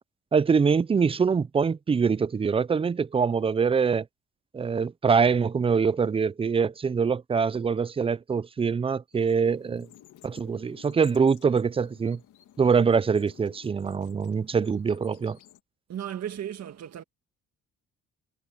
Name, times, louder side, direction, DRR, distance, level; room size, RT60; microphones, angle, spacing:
voice 1, 0.3-4.1 4.5-9.9 10.2-12.2 12.6-15.4, right 5 dB, 20° right, 0.4 m, -24 dB
sound 1, 9.1-15.6, left 11 dB, 75° left, 2.0 m, -54 dB
voice 2, 15.9-17.0, right 10 dB, 60° right, 1.6 m, -35 dB
cardioid pair, 90°, 30 cm